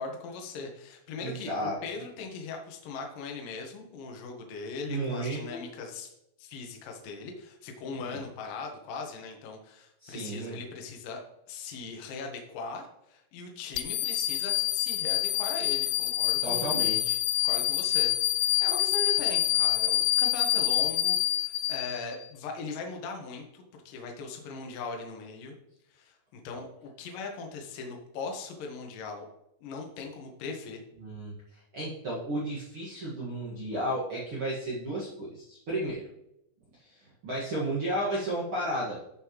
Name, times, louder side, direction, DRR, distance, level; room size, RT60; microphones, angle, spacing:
voice 1, 0.0-6.1 6.4-11.2 11.5-16.7 17.4-25.5 25.9-29.3 29.6-30.8, left 4 dB, 65° left, 2 dB, 2.3 m, -39 dB
voice 2, 1.2-1.8 4.9-5.6 8.0-8.2 10.0-10.6 16.4-17.2 31.0-36.1 36.8-39.0, right 1 dB, 70° right, -7 dB, 1.3 m, -33 dB
sound 1, 13.8-22.2, left 14 dB, 85° left, 2.7 m, -27 dB
14.0 x 5.6 x 3.1 m, 0.83 s
omnidirectional pair, 5.7 m